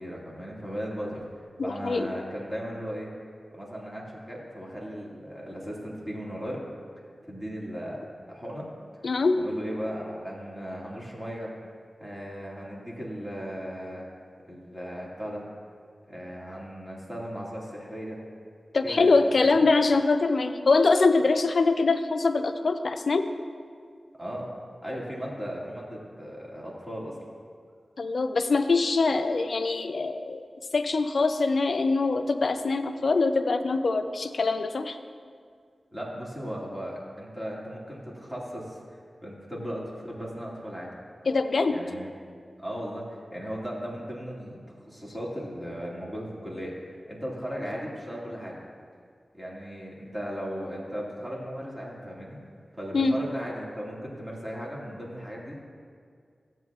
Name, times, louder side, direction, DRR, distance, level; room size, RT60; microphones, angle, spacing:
voice 1, 0.0-3.1 3.5-6.6 7.3-8.0 8.3-8.7 9.4-11.5 12.0-14.0 14.5-15.5 16.1-18.2 18.8-19.5 24.2-24.5 24.8-27.2 35.9-40.9 41.7-42.1 42.6-48.6 49.3-52.4 52.8-55.6, equal, 10° right, -5 dB, 2.1 m, -37 dB
voice 2, 1.6-2.1 9.0-9.4 18.7-23.3 28.0-30.4 30.7-35.0 41.3-41.8 52.9-53.2, left 3 dB, 70° left, 8 dB, 0.4 m, -23 dB
14.0 x 7.9 x 2.4 m, 2.1 s
wide cardioid pair, 65°, 0 cm